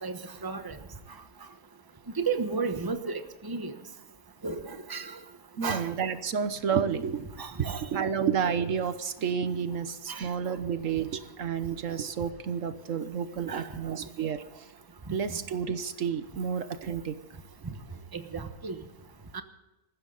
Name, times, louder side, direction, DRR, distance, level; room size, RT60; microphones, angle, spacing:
voice 1, 0.0-0.8 2.1-3.7 4.4-5.1 5.6-5.8 7.4-7.8 10.1-10.3 13.5-13.7 18.1-18.8 19.3-19.4, right 4 dB, 15° right, 8 dB, 1.1 m, -33 dB
voice 2, 5.6-7.3 7.6-14.4 15.1-17.2, right 7 dB, 70° right, 11 dB, 1.3 m, -30 dB
20.0 x 15.0 x 3.9 m, 1.0 s
omnidirectional pair, 1.4 m